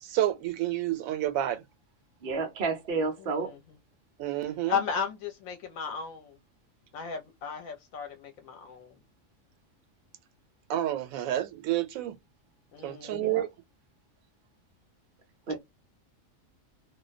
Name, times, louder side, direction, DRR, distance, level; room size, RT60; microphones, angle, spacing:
voice 1, 0.0-1.6 4.2-4.8 10.7-12.2 12.8-13.5, right 13 dB, 85° right, 1.0 m, -29 dB
voice 2, 2.2-3.5 13.1-13.4 15.5-15.6, right 4 dB, 50° right, 0.8 m, -30 dB
voice 3, 3.2-3.6 4.7-6.4 6.9-8.9 12.7-13.3 15.5-15.6, left 6 dB, 80° left, 1.0 m, -35 dB
2.5 x 2.1 x 2.3 m
omnidirectional pair, 1.4 m